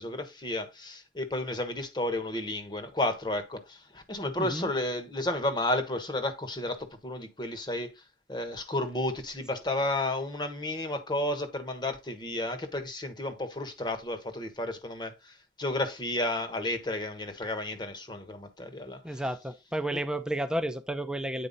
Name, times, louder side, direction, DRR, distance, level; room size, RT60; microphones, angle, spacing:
voice 1, 0.0-7.9 8.3-19.2 19.9-20.0, left 1 dB, 25° left, 1.2 m, -32 dB
voice 2, 4.4-4.7 19.0-21.5, right 1 dB, 5° right, 0.7 m, -32 dB
8.8 x 4.6 x 4.0 m
head